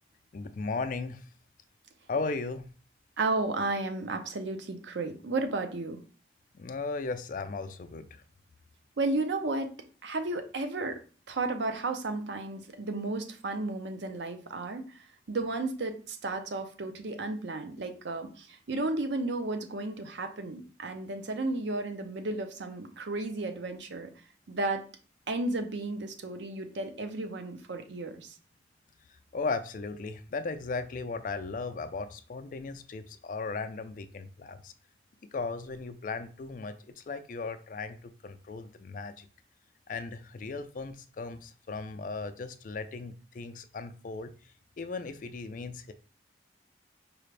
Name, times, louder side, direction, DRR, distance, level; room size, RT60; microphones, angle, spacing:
voice 1, 0.3-1.3 2.1-2.7 6.5-8.2 29.3-34.7 35.2-39.3 39.9-44.3 44.8-45.9, left 4 dB, 45° left, 9 dB, 0.4 m, -36 dB
voice 2, 3.2-6.0 9.0-9.8 10.0-11.0 11.3-24.1 24.5-24.8 25.3-28.3, right 2 dB, 80° right, 7 dB, 0.6 m, -33 dB
4.7 x 2.5 x 3.2 m, 0.38 s
head